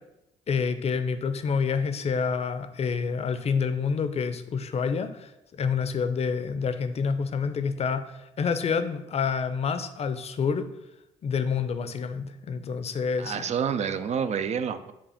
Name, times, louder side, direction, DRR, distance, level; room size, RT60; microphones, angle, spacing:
voice 1, 0.5-10.7 11.2-13.5, left 5 dB, 45° left, 10 dB, 0.6 m, -28 dB
voice 2, 13.2-14.9, right 7 dB, 45° right, 11 dB, 0.5 m, -28 dB
7.2 x 2.4 x 5.6 m, 0.92 s
hypercardioid pair, 60°, 15 cm